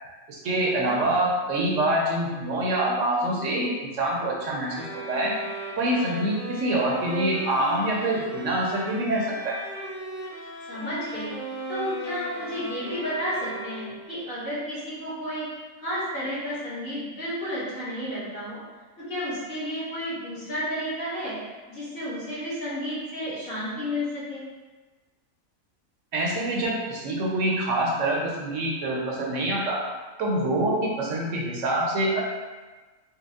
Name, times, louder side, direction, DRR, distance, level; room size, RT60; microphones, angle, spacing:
voice 1, 0.3-5.4 5.8-9.6 26.1-29.8 30.2-32.2, right 1 dB, 70° right, -2 dB, 1.0 m, -25 dB
sound 1, 4.7-14.1, right 2 dB, 15° right, 0.9 m, -37 dB
voice 2, 10.7-11.3 11.7-15.5 15.8-18.6 19.1-21.3 21.7-24.4, equal, 45° left, -11 dB, 1.8 m, -32 dB
4.6 x 2.2 x 3.5 m, 1.3 s
omnidirectional pair, 1.4 m